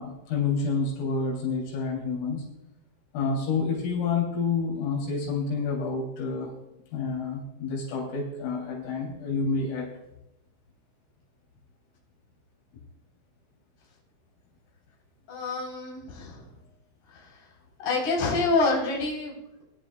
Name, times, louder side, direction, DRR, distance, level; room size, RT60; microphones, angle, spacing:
voice 1, 0.0-2.4 3.1-6.5 6.9-9.9, left 4 dB, 85° left, -2 dB, 5.9 m, -29 dB
voice 2, 15.3-16.4 17.8-19.6, left 3 dB, 40° left, -3 dB, 5.0 m, -27 dB
21.5 x 12.0 x 2.4 m, 0.86 s
omnidirectional pair, 5.7 m